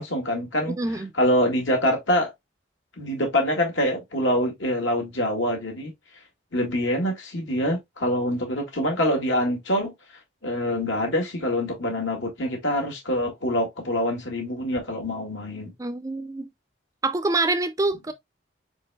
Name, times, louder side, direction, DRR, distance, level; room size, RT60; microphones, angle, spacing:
voice 1, 0.0-0.8 1.2-2.3 3.0-5.9 6.5-9.9 10.4-15.7, equal, 80° left, 1.9 m, -25 dB
voice 2, 0.8-1.1 15.8-16.5 17.0-18.1, right 2 dB, 15° right, 0.4 m, -25 dB
4.5 x 4.4 x 2.2 m
head